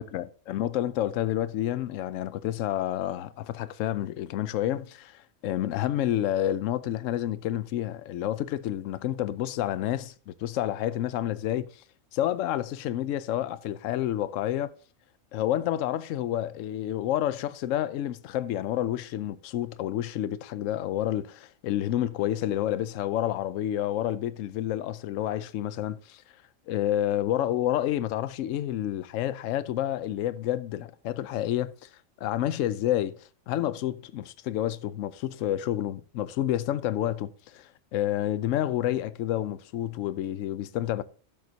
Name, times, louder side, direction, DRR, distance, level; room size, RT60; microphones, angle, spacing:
voice 1, 0.0-11.8 12.1-14.7 15.3-26.2 26.7-31.9 32.2-41.0, left 12 dB, 75° left, 0.9 m, -29 dB
12.0 x 7.5 x 2.8 m
omnidirectional pair, 1.4 m